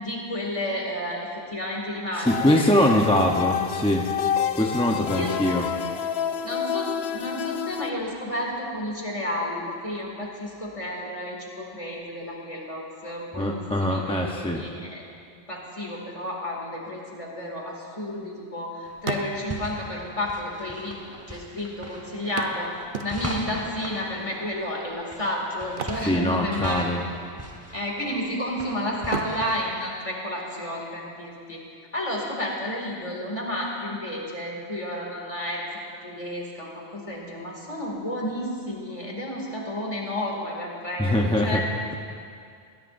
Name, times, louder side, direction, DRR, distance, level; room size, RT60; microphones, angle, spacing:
voice 1, 0.0-2.9 5.1-5.4 6.4-15.1 15.3-21.0 21.3-22.7 23.0-26.9 27.7-31.6 31.9-35.7 36.0-42.0, left 1 dB, 30° left, -2 dB, 2.4 m, -31 dB
sound 1, 2.2-7.9, left 9 dB, 75° left, 0.8 m, -29 dB
voice 2, 2.2-4.1 4.6-5.7 13.3-14.6 26.1-27.0 41.0-41.6, left 1 dB, 5° left, 0 dB, 0.7 m, -22 dB
sound 2, 17.3-18.6 18.9-19.8 20.7-20.8 21.0-21.1 22.4-23.6 25.6-26.9 27.2-27.4 27.9-28.5 29.0-30.8 32.8-32.9 33.3-33.4, right 5 dB, 55° right, 0.9 m, -36 dB
sound 3, 18.9-29.7, right 1 dB, 15° right, 1.0 m, -40 dB
21.0 x 16.0 x 2.6 m, 2.3 s
omnidirectional pair, 1.1 m